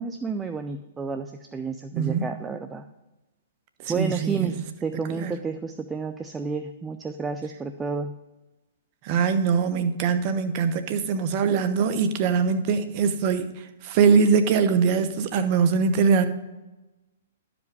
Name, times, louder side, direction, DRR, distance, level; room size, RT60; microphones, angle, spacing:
voice 1, 0.0-2.9 3.9-4.5 4.8-8.2, right 5 dB, 15° right, 7 dB, 0.5 m, -31 dB
voice 2, 1.9-2.3 3.8-4.5 5.2-5.3 9.0-13.5 13.8-16.3, right 6 dB, 40° right, 10 dB, 0.9 m, -22 dB
12.0 x 5.1 x 4.8 m, 1.1 s
hypercardioid pair, 120°, 0 cm